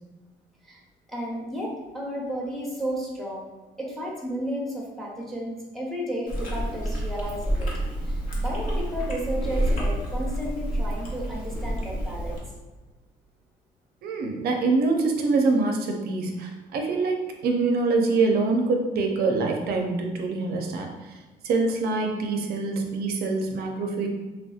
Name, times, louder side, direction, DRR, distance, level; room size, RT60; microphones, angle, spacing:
voice 1, 1.1-3.5 3.8-7.7 8.1-12.4, equal, ahead, -3 dB, 0.7 m, -33 dB
Chewing mastication, 6.3-12.4, right 1 dB, 55° left, 0.9 m, -28 dB
voice 2, 14.0-21.2 21.4-24.1, right 3 dB, 65° right, 3 dB, 0.4 m, -25 dB
3.2 x 2.6 x 2.4 m, 1.2 s
cardioid pair, 110°, 17 cm